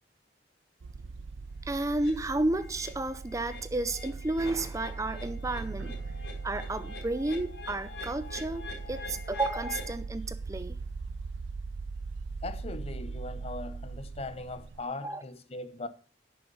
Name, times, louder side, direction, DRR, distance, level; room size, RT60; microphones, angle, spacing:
sound 1, 0.8-14.8, right 4 dB, 85° right, 0.5 m, -40 dB
voice 1, 1.6-6.0 6.4-10.8 15.0-15.2, right 2 dB, 20° right, 0.5 m, -32 dB
sound 2, 1.9-2.1 2.6-2.9 3.2-9.9, left 4 dB, 65° left, 4.5 m, -45 dB
voice 2, 12.4-15.9, left 2 dB, 35° left, 0.7 m, -39 dB
10.5 x 6.7 x 5.3 m
head